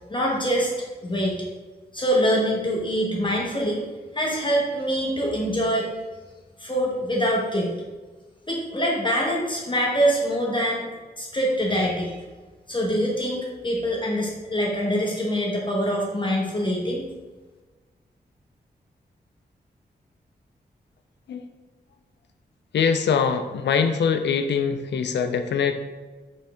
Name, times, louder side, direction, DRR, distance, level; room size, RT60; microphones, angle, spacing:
voice 1, 0.1-0.7 1.0-1.4 1.9-3.9 4.1-5.9 6.6-7.7 8.5-10.9 11.2-12.2 12.7-17.1, equal, 25° left, -3 dB, 1.2 m, -24 dB
voice 2, 22.7-25.7, left 6 dB, 80° left, 8 dB, 0.4 m, -23 dB
4.1 x 3.7 x 3.4 m, 1.3 s
cardioid pair, 45°, 18 cm